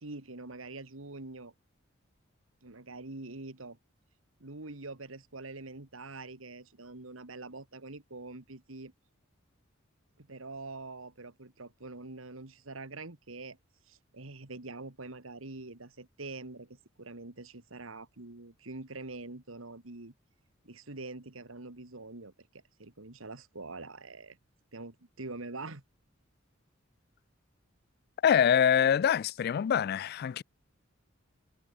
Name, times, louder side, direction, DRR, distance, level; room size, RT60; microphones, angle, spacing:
voice 1, 0.0-1.5 2.6-3.8 4.4-8.9 10.2-13.6 13.9-20.1 20.6-22.3 22.8-24.4 24.7-25.8, right 3 dB, 85° right, 2.1 m, -44 dB
voice 2, 28.2-30.4, left 8 dB, 50° left, 0.3 m, -25 dB
head